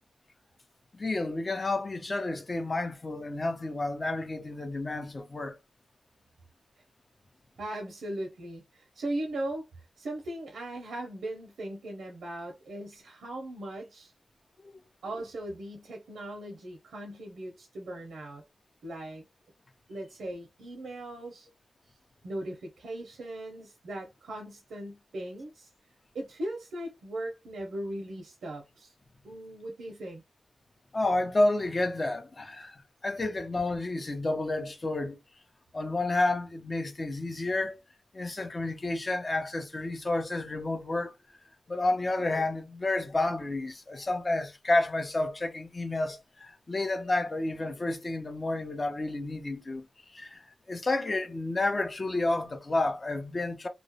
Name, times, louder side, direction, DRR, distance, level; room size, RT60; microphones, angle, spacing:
voice 1, 0.9-5.6 14.6-14.7 30.9-35.2 35.7-37.8 38.1-41.1 41.7-49.9 50.1-53.7, left 2 dB, 40° left, 0.7 m, -30 dB
voice 2, 7.6-14.1 15.0-18.4 18.8-19.2 19.9-21.5 22.2-25.7 26.1-28.9 29.2-30.2, right 1 dB, 90° right, 0.6 m, -38 dB
2.3 x 2.0 x 2.7 m
cardioid pair, 60°, 0 cm